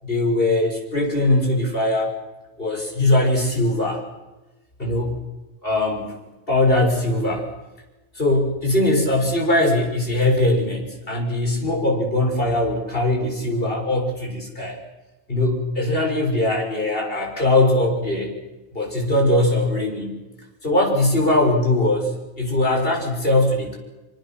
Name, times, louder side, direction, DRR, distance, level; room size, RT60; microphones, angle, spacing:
voice 1, 0.0-2.2 2.6-4.0 4.8-5.2 5.6-6.2 6.5-7.5 8.2-14.8 15.3-18.3 18.7-20.2 20.6-23.8, left 1 dB, 40° left, 1 dB, 7.1 m, -21 dB
27.5 x 26.0 x 6.2 m, 1.1 s
omnidirectional pair, 1.4 m